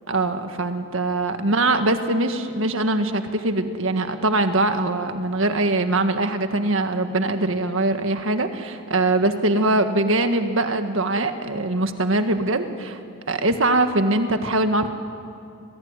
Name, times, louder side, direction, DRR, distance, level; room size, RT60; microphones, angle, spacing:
voice 1, 0.1-13.0 13.3-14.9, right 2 dB, 60° right, 7 dB, 1.8 m, -22 dB
27.5 x 20.0 x 9.9 m, 2.6 s
head